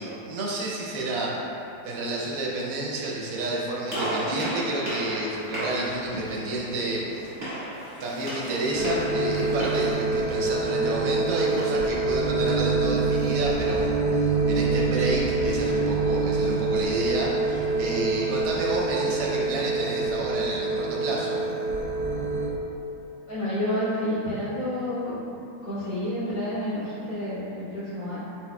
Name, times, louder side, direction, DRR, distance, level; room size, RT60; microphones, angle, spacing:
voice 1, 0.0-1.4 1.8-7.3 8.0-21.4, right 2 dB, 65° right, -4 dB, 0.9 m, -30 dB
Gunshot gunfire, 3.9-9.9, right 1 dB, 20° right, 1.1 m, -34 dB
sound 1, 8.7-22.5, right 3 dB, 60° left, 1.6 m, -26 dB
voice 2, 23.3-25.1 25.6-28.2, left 1 dB, 75° left, -13 dB, 2.3 m, -29 dB
4.4 x 4.2 x 2.2 m, 2.8 s
omnidirectional pair, 2.0 m